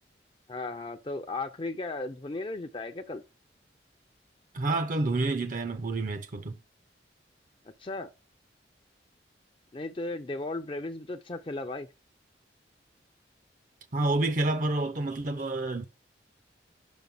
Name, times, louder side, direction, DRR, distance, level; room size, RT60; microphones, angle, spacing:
voice 1, 0.5-3.2 7.8-8.1 9.7-11.9, left 2 dB, 30° left, 0.5 m, -35 dB
voice 2, 4.5-6.6 13.9-15.9, right 2 dB, 45° right, 0.6 m, -28 dB
6.3 x 5.3 x 5.9 m
head